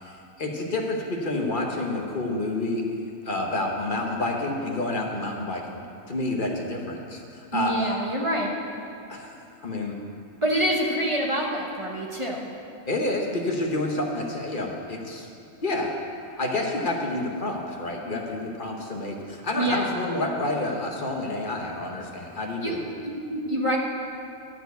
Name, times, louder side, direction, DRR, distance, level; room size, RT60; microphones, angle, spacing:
voice 1, 0.0-2.9 3.2-5.8 6.1-7.7 9.1-10.0 12.9-15.3 15.6-15.9 16.4-22.8, left 2 dB, 40° left, 1 dB, 1.0 m, -29 dB
voice 2, 7.5-8.5 10.4-12.5 19.6-19.9 22.6-22.8 23.3-23.8, right 1 dB, 25° right, -2 dB, 0.9 m, -26 dB
12.0 x 4.4 x 8.0 m, 2.6 s
omnidirectional pair, 1.4 m